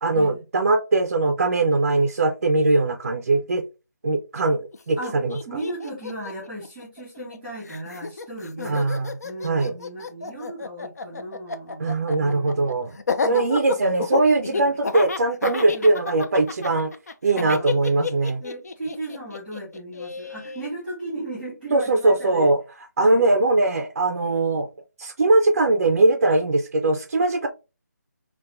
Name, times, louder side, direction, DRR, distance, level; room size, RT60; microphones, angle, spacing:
voice 1, 0.0-3.6 4.0-5.4 8.6-9.1 9.4-9.7 11.8-12.9 13.3-16.9 17.2-18.4 21.7-22.6 23.0-24.7 25.0-27.5, right 2 dB, 50° right, 0.4 m, -21 dB
Laughter, 4.7-4.8 5.0-7.4 7.6-20.7, left 4 dB, 60° left, 0.4 m, -30 dB
voice 2, 5.4-8.9 9.2-12.7 13.2-13.4 14.4-14.7 15.7-15.9 17.3-17.8 18.4-22.5 23.0-23.3, right 1 dB, ahead, 1.2 m, -36 dB
4.2 x 2.2 x 2.3 m
figure-of-eight pair, 170°, 10 cm